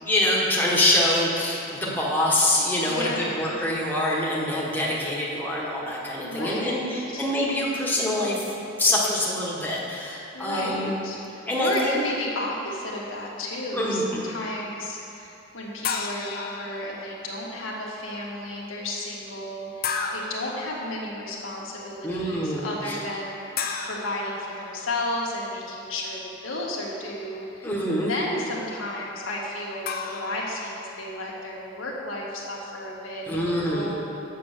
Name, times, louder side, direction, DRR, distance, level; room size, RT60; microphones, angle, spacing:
voice 1, 0.0-8.5 8.8-10.9 11.5-12.0 13.7-14.2 22.0-23.0 27.6-28.1 33.3-34.0, left 1 dB, 10° left, -5 dB, 1.3 m, -25 dB
voice 2, 2.8-3.5 6.2-7.3 10.3-11.2 11.6-27.7 28.1-34.0, left 1 dB, 85° left, -4 dB, 1.5 m, -33 dB
sound 1, 15.8-17.2 19.8-20.6 23.6-25.1 29.8-31.0, left 5 dB, 50° left, 0.6 m, -33 dB
7.8 x 6.0 x 6.7 m, 2.8 s
head